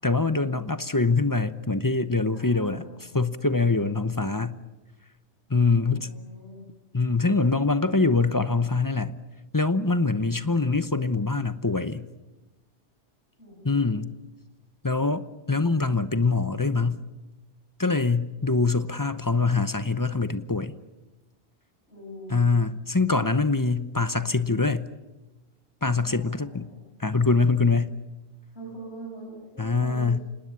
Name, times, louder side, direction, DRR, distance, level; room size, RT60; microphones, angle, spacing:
voice 1, 0.0-4.6 5.5-6.1 6.9-9.2 9.5-12.1 13.6-14.1 14.8-17.1 17.8-20.7 22.3-24.9 25.8-26.7 27.0-28.0 29.6-30.2, left 3 dB, 20° left, 12 dB, 0.8 m, -24 dB
voice 2, 2.3-3.2 5.9-6.7 13.4-13.8 21.9-22.5 26.0-26.9 28.5-30.2, right 1 dB, 65° left, -3 dB, 7.4 m, -44 dB
26.5 x 19.5 x 9.7 m, 1.1 s
omnidirectional pair, 1.2 m